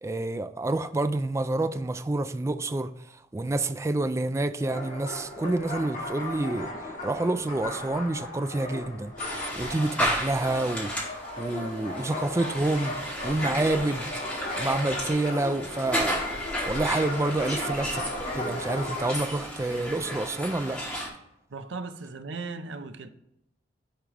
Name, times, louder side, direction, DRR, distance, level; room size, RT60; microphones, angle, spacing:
voice 1, 0.0-2.9 3.3-6.7 7.0-13.0 13.2-14.1 14.6-16.2 16.7-18.0 18.3-20.8, right 2 dB, 15° right, 0.3 m, -28 dB
sound 1, 4.6-19.2, left 1 dB, 45° left, 1.4 m, -36 dB
sound 2, 9.2-21.1, equal, 5° left, 2.2 m, -33 dB
voice 2, 21.5-23.1, right 3 dB, 70° right, 0.6 m, -37 dB
10.5 x 3.7 x 3.3 m
head